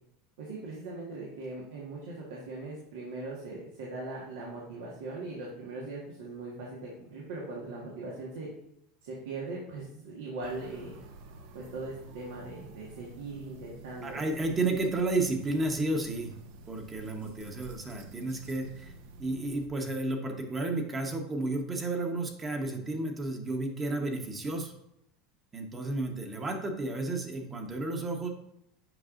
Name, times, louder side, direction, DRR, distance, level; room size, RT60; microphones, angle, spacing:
voice 1, 0.4-8.5 9.0-11.0 11.5-14.3, right 3 dB, 85° right, -4 dB, 1.5 m, -40 dB
sound 1, 10.4-19.7, right 2 dB, 70° right, 0.8 m, -50 dB
voice 2, 14.0-16.3 16.7-18.9 19.2-24.7 25.5-28.3, right 2 dB, 20° right, 4 dB, 1.0 m, -32 dB
7.8 x 5.3 x 2.5 m, 0.79 s
supercardioid pair, 135°, 0 cm